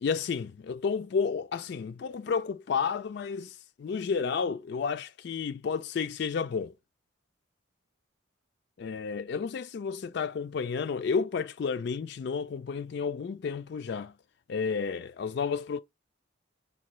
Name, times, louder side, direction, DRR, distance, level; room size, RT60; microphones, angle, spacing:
voice 1, 0.0-6.7 8.8-14.1 14.5-15.8, left 5 dB, 55° left, 0.3 m, -31 dB
4.6 x 3.8 x 3.1 m
head